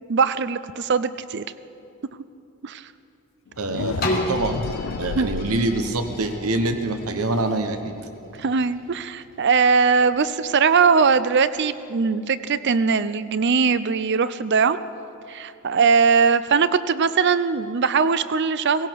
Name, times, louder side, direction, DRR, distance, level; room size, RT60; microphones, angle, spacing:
voice 1, 0.0-1.4 2.6-2.8 5.2-5.3 8.4-14.8 15.3-18.9, right 5 dB, 50° right, 14 dB, 0.5 m, -20 dB
sound 1, 3.5-9.4, left 6 dB, 65° left, 0.3 m, -36 dB
voice 2, 3.6-4.6 5.0-7.9, right 2 dB, 85° right, 7 dB, 1.1 m, -25 dB
sound 2, 4.0-9.7 10.3-10.4, left 1 dB, 45° left, 1.7 m, -33 dB
18.0 x 17.0 x 4.7 m, 2.6 s
head